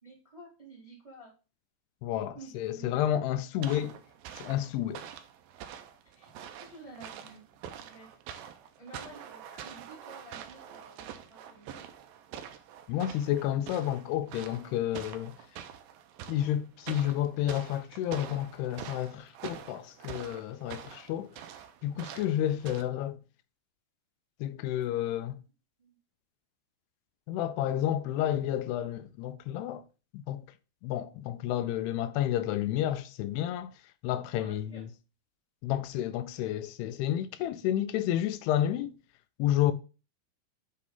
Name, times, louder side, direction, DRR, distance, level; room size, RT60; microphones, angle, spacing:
voice 1, 0.0-1.3 2.1-3.0 6.1-6.3 6.6-7.4 7.8-8.2 8.8-11.9 25.8-26.0 34.3-34.8, right 2 dB, 15° right, 1.2 m, -51 dB
voice 2, 2.0-4.0 4.4-5.0 12.9-15.3 16.3-21.4 21.8-23.2 24.4-25.4 27.3-29.8 30.1-30.5 30.8-33.7 34.0-34.9 35.6-38.9 39.4-39.7, left 12 dB, 85° left, 2.5 m, -30 dB
sound 1, 3.6-22.8, right 9 dB, 85° right, 2.1 m, -46 dB
8.2 x 3.1 x 3.8 m
omnidirectional pair, 4.6 m